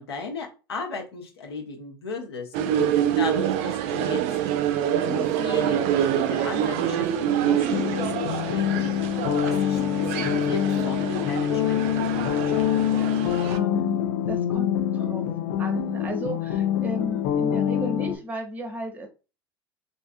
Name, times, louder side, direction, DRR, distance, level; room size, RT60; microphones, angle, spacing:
voice 1, 0.0-2.5 2.9-4.2 4.6-12.7, left 4 dB, 85° left, 1 dB, 0.8 m, -36 dB
sound 1, 2.5-13.6, right 10 dB, 55° right, 0.4 m, -26 dB
sound 2, 7.7-18.2, left 9 dB, 60° left, 0.4 m, -25 dB
voice 2, 13.5-14.0 14.3-15.3 15.6-19.1, equal, 15° right, 4 dB, 0.8 m, -34 dB
2.7 x 2.4 x 2.6 m, 0.32 s
hypercardioid pair, 85°, 13 cm